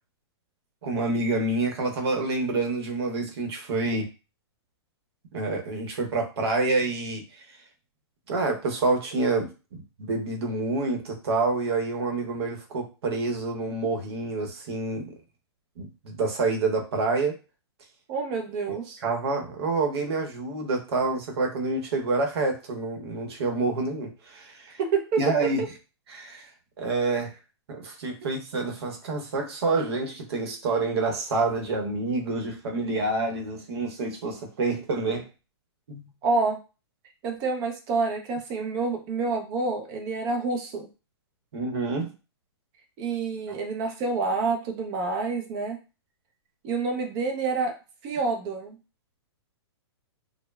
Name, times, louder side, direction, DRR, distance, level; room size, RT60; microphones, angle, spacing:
voice 1, 0.8-4.1 5.3-7.2 8.3-15.1 15.8-17.4 19.0-24.8 25.2-25.6 26.1-26.5 26.8-27.3 27.7-35.3 35.9-36.1 41.5-42.1 43.5-43.6, right 3 dB, 65° right, 2 dB, 0.9 m, -27 dB
voice 2, 18.1-19.0 24.8-25.2 28.2-28.3 36.2-36.6 37.2-40.9 43.0-45.8 46.6-47.7 48.0-48.8, right 4 dB, 30° right, 4 dB, 0.5 m, -28 dB
3.0 x 2.1 x 2.2 m, 0.31 s
hypercardioid pair, 150°, 14 cm